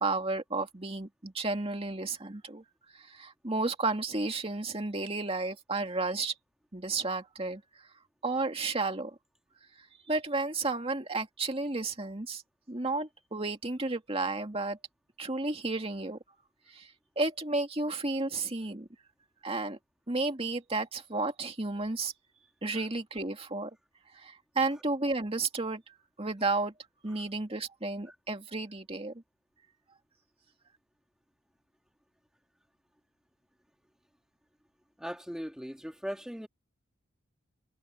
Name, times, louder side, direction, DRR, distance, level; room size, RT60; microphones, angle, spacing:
voice 1, 0.0-2.6 2.9-6.3 6.7-7.6 8.2-9.2 10.1-12.4 12.7-14.8 15.2-16.2 16.7-16.9 17.2-18.9 19.4-19.8 20.1-22.1 22.6-23.7 24.1-25.8 26.2-26.7 27.0-29.1, right 3 dB, 25° right, 2.2 m, -32 dB
voice 2, 35.0-36.5, equal, 5° right, 3.5 m, -39 dB
head